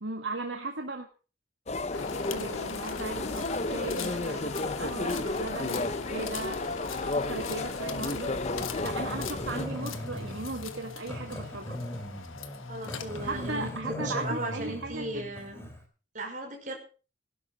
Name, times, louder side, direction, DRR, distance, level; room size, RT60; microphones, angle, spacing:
voice 1, 0.0-1.1 2.3-8.4 8.8-11.8 13.2-15.3, right 2 dB, 65° right, 3 dB, 1.8 m, -37 dB
sound 1, 1.7-9.7, left 2 dB, 35° left, 0.8 m, -33 dB
sound 2, 1.9-13.6, left 6 dB, 90° left, 1.4 m, -40 dB
Growling, 8.5-15.8, left 1 dB, 15° left, 3.6 m, -39 dB
voice 2, 12.7-15.7 16.1-16.7, right 1 dB, 40° right, 1 dB, 5.6 m, -36 dB
17.0 x 11.5 x 5.4 m, 0.37 s
head